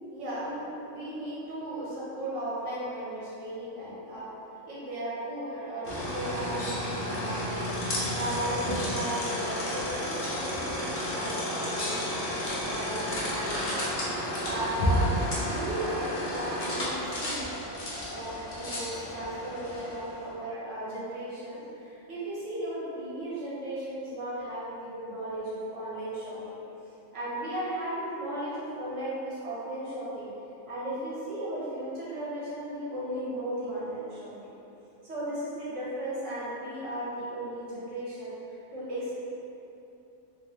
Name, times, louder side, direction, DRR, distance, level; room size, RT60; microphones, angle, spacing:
voice 1, 0.1-4.3 4.7-13.7 14.4-17.5 18.1-26.6 27.1-30.3 30.7-34.5 35.0-39.2, right 1 dB, 70° right, -9 dB, 1.3 m, -36 dB
sound 1, 5.8-20.3, equal, 50° left, 0.7 m, -32 dB
3.7 x 2.3 x 3.0 m, 2.8 s
omnidirectional pair, 1.3 m